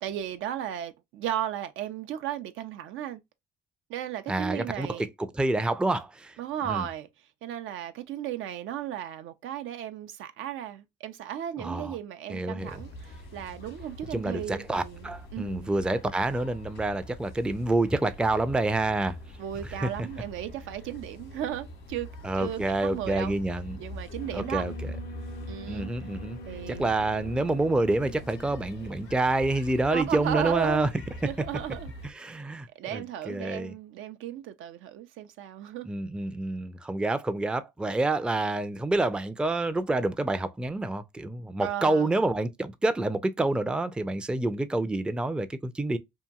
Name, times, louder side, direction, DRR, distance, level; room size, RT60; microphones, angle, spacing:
voice 1, 0.0-3.2 3.9-5.1 6.4-7.1 7.4-15.7 19.4-22.1 22.3-23.4 23.7-24.6 25.5-25.9 26.5-26.9 29.9-30.8 31.2-31.9 32.8-35.9 41.6-42.1, right 10 dB, 80° right, 0.5 m, -35 dB
voice 2, 4.3-6.3 6.7-6.9 11.6-12.0 12.3-12.7 14.1-19.2 19.8-19.9 22.2-23.8 24.3-24.7 25.7-26.4 26.7-30.9 32.0-33.7 35.9-46.0, right 2 dB, 5° right, 0.3 m, -28 dB
sound 1, 12.6-32.1, equal, 80° left, 1.1 m, -43 dB
Alarm, 24.2-31.3, equal, 50° left, 0.5 m, -46 dB
2.8 x 2.6 x 2.2 m
cardioid pair, 90°, 20 cm